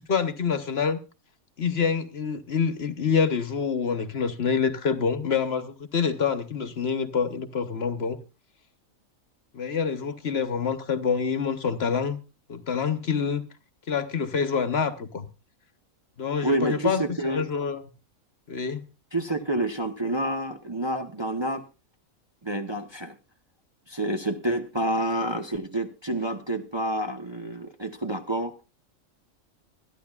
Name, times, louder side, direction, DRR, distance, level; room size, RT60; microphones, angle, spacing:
voice 1, 0.1-1.0 1.6-8.2 9.5-12.2 12.5-13.4 13.9-15.3 16.2-17.8 18.5-18.8, left 6 dB, 50° left, 1.2 m, -26 dB
voice 2, 16.4-17.4 19.1-21.6 22.4-23.2 23.9-28.5, right 1 dB, 25° right, 0.8 m, -28 dB
25.5 x 10.0 x 2.3 m
omnidirectional pair, 1.4 m